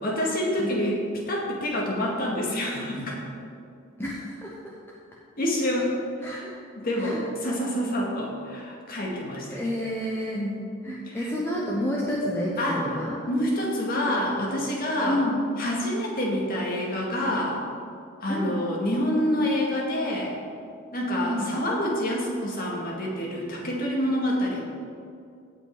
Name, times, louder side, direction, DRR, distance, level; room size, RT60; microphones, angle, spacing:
voice 1, 0.0-3.2 5.4-5.9 6.2-6.5 6.8-9.6 10.3-10.7 11.1-11.4 12.6-12.8 13.3-15.2 15.6-17.6 18.2-20.4 20.9-24.6, equal, 45° left, -3 dB, 2.1 m, -27 dB
voice 2, 4.0-4.5 6.2-6.5 7.0-7.2 9.5-10.4 10.8-13.2 15.1-15.4 18.3-18.6 21.2-21.6, left 1 dB, 10° left, -4 dB, 1.0 m, -29 dB
16.0 x 5.6 x 4.8 m, 2.4 s
head